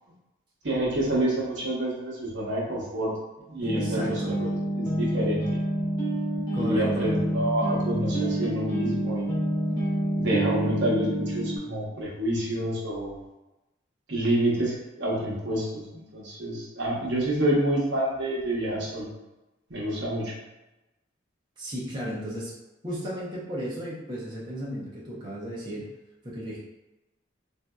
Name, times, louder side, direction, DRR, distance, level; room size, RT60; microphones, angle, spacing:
voice 1, 0.6-3.1 3.5-4.5 4.8-5.6 6.5-9.3 10.2-13.2 14.1-19.1 19.7-20.3, right 1 dB, 70° right, -5 dB, 0.9 m, -28 dB
sound 1, 3.6-11.6, right 1 dB, 20° left, 0.8 m, -28 dB
voice 2, 3.6-4.3 6.5-7.1 21.6-22.5 22.8-25.9 26.2-26.6, equal, 25° right, -7 dB, 0.7 m, -34 dB
3.6 x 2.6 x 2.2 m, 0.99 s
head